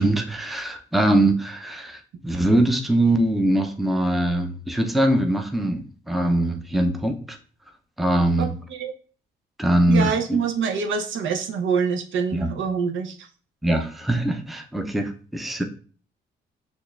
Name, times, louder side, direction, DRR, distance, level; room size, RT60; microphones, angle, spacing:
voice 1, 0.0-2.0 2.2-7.4 8.0-8.6 9.6-10.4 12.3-12.5 13.6-15.6, right 1 dB, ahead, 4 dB, 0.5 m, -22 dB
voice 2, 8.4-8.9 9.9-13.3, right 6 dB, 75° right, 4 dB, 0.6 m, -25 dB
6.2 x 2.4 x 2.3 m, 0.43 s
cardioid pair, 90°, 20 cm